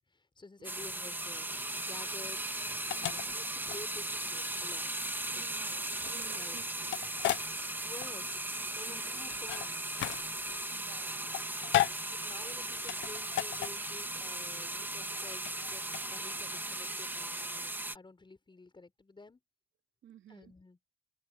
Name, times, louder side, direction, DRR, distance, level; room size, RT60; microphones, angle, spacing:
voice 1, 0.1-1.5 1.9-2.4 2.7-4.9 5.3-5.4 5.8-6.6 7.8-8.4 8.8-9.8 12.1-19.4 20.3-20.8, left 3 dB, 25° left, 6.0 m, -51 dB
sound 1, 0.6-18.0, right 1 dB, 10° right, 1.6 m, -37 dB
sound 2, 1.2-16.6, left 14 dB, 75° left, 0.6 m, -37 dB
voice 2, 2.9-3.3 5.3-6.9 8.8-9.3 10.4-11.5 12.2-12.6 20.0-20.5, right 11 dB, 70° right, 2.9 m, -55 dB
open air
cardioid pair, 90°, 20 cm